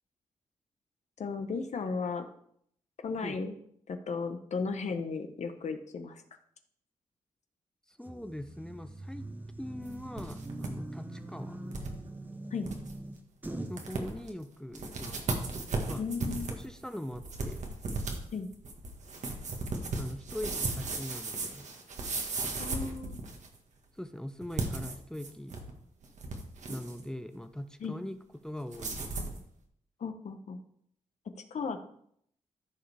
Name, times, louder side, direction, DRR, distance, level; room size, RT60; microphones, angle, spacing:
voice 1, 1.2-2.3 3.0-3.5 3.9-6.2 12.5-12.7 16.0-16.5 18.3-18.5 22.6-23.2 27.8-28.0 30.0-30.6 31.3-31.8, left 4 dB, 65° left, 7 dB, 1.0 m, -35 dB
voice 2, 7.9-9.3 9.6-11.6 13.7-15.5 15.9-16.0 16.5-17.6 20.0-21.7 23.9-25.6 26.7-29.5, left 1 dB, 5° left, 9 dB, 0.6 m, -41 dB
sound 1, 8.1-13.9, right 1 dB, 15° right, 1.0 m, -42 dB
sound 2, 9.8-10.7 11.0-11.1 11.7-11.9 12.3-12.4 12.6-12.9 13.4-13.5 13.8-14.3 14.7-23.6 24.4-25.7 26.0-27.0 28.7-29.4, right 3 dB, 65° right, 1.5 m, -36 dB
14.0 x 5.0 x 3.5 m, 0.68 s
cardioid pair, 75°, 13 cm